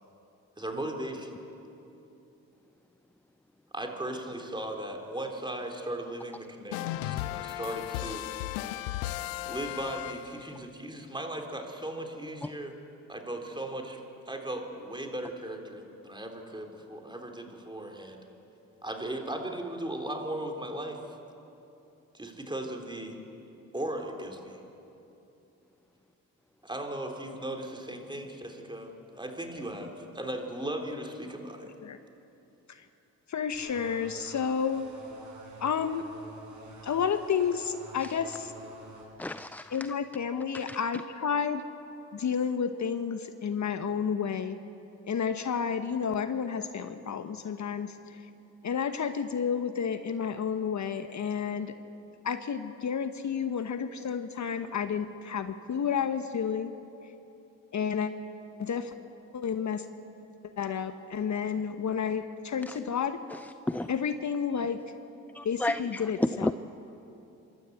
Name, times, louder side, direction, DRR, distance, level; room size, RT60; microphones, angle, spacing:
voice 1, 0.6-1.3 3.7-8.3 9.5-12.8 13.1-14.0 14.3-18.2 18.8-21.0 22.1-23.2 23.7-24.6 26.6-31.7, right 1 dB, 10° right, 2 dB, 3.7 m, -37 dB
sound 1, 6.7-10.6, left 14 dB, 90° left, 0.6 m, -35 dB
voice 2, 33.3-34.8 35.6-36.0 36.8-38.5 39.7-41.6 42.1-44.6 45.1-48.0 48.6-51.7 52.2-56.7 57.7-58.1 58.6-58.9 59.3-59.9 60.6-63.2 63.9-64.8 65.4-66.5, left 7 dB, 45° left, 9 dB, 1.1 m, -31 dB
sound 2, 33.5-39.1, right 1 dB, 50° right, 6.8 m, -49 dB
voice 3, 39.2-39.8 40.5-40.8 62.7-62.8 63.3-63.4 63.7-63.9 65.3-66.5, left 1 dB, 5° left, 13 dB, 0.4 m, -32 dB
25.5 x 13.0 x 8.1 m, 2.9 s
hypercardioid pair, 50°, 39 cm